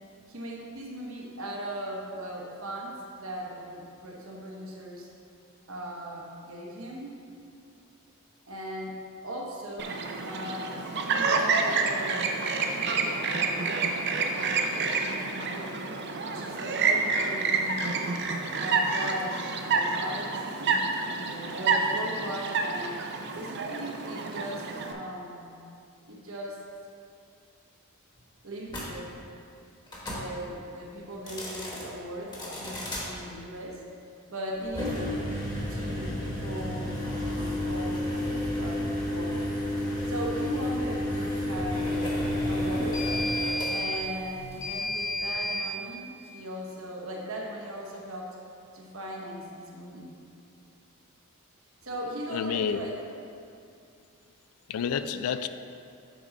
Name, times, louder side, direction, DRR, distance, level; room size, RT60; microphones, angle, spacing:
voice 1, 0.3-5.1 5.7-7.2 8.5-9.0 9.2-10.7 10.9-12.4 12.8-14.0 14.3-15.8 16.2-17.9 18.5-23.0 23.3-25.5 26.1-26.7 28.4-29.1 30.0-33.8 34.3-35.4 35.7-39.4 40.1-42.2 42.5-43.0 43.7-48.4 48.7-50.1 51.8-53.0 55.2-55.4, right 1 dB, 65° right, -2 dB, 1.1 m, -38 dB
Chirp tweet, 9.8-24.9, right 4 dB, 50° right, 0.5 m, -28 dB
sound 1, 28.7-28.9 29.9-30.2 31.1-31.8 32.3-33.0 34.6-45.7, left 1 dB, 20° left, 1.1 m, -31 dB
voice 2, 52.3-52.9 54.7-55.5, left 7 dB, 75° left, 12 dB, 0.3 m, -29 dB
7.6 x 4.0 x 5.2 m, 2.5 s
head